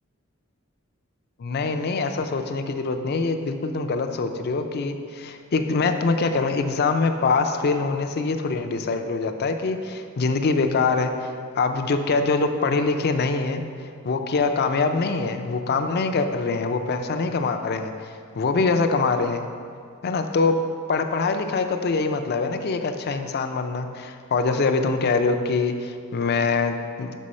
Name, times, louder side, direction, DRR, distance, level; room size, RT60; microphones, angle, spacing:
voice 1, 1.4-19.5 20.0-20.6 20.9-27.1, left 4 dB, 50° left, 6 dB, 0.4 m, -24 dB
6.4 x 5.4 x 4.2 m, 2.1 s
head